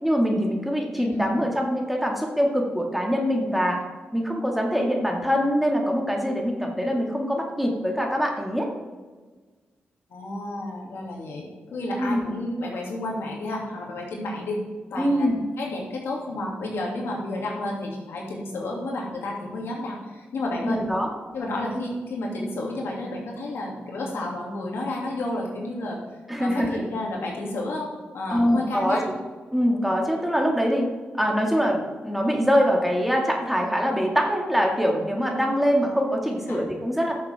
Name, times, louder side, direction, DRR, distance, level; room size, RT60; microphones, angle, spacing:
voice 1, 0.0-3.8 4.1-8.7 12.0-12.3 15.0-15.4 20.6-21.1 26.3-26.8 28.3-29.0 29.5-30.9 31.2-37.1, equal, 5° right, 0 dB, 2.1 m, -23 dB
voice 2, 1.0-1.4 10.1-14.6 14.9-15.3 15.6-20.8 21.3-26.0 26.4-27.9 28.1-29.1 36.5-36.6, left 2 dB, 80° left, -2 dB, 2.5 m, -31 dB
13.0 x 6.8 x 3.5 m, 1.4 s
cardioid pair, 65°, 4 cm